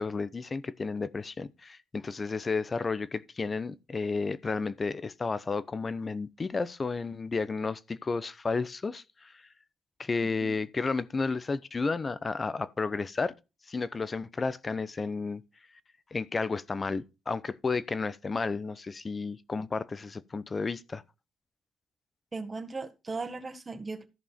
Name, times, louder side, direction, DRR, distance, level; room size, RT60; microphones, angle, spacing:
voice 1, 0.0-9.4 10.0-13.3 13.7-15.4 16.1-21.0, left 4 dB, 30° left, 0.8 m, -32 dB
voice 2, 22.3-24.1, right 3 dB, 25° right, 1.6 m, -37 dB
14.0 x 5.4 x 4.3 m
cardioid pair, 90°, 0 cm